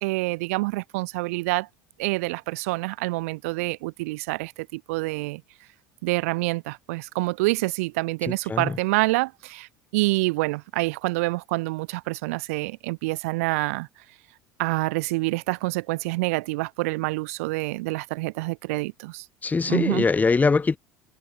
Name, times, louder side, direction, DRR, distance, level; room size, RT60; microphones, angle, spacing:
voice 1, 0.0-1.7 2.0-5.4 6.0-13.9 14.6-19.2 19.7-20.1, right 23 dB, 60° right, 2.2 m, -27 dB
voice 2, 19.4-20.8, left 4 dB, 20° left, 5.8 m, -22 dB
figure-of-eight pair, 70°, 9 cm